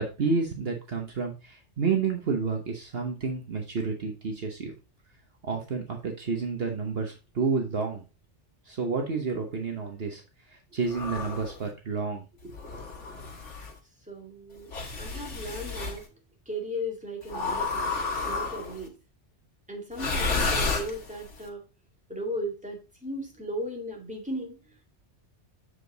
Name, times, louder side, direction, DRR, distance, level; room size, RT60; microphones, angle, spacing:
voice 1, 0.0-4.7 5.4-8.0 8.7-10.2 10.7-12.5, right 4 dB, 55° right, 3 dB, 1.2 m, -30 dB
sound 1, 10.9-11.6 12.5-13.7 14.7-16.0 17.3-18.8 19.9-21.3, left 4 dB, 85° left, 1.8 m, -31 dB
voice 2, 14.0-14.7 15.0-16.1 16.5-17.9 18.2-18.9 19.7-21.6 22.1-24.8, equal, 5° right, 0 dB, 2.1 m, -36 dB
7.5 x 4.9 x 3.8 m, 0.29 s
omnidirectional pair, 1.2 m